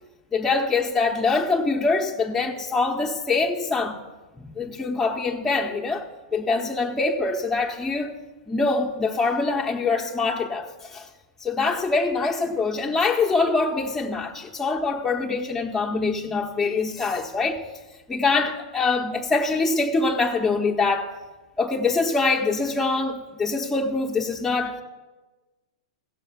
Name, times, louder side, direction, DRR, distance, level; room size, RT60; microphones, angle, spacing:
voice 1, 0.3-4.0 4.4-8.1 8.5-11.1 11.4-17.6 18.1-21.1 21.6-24.8, left 3 dB, 10° left, 1.0 m, -24 dB
15.5 x 6.4 x 5.8 m
hypercardioid pair, 110°, 3 cm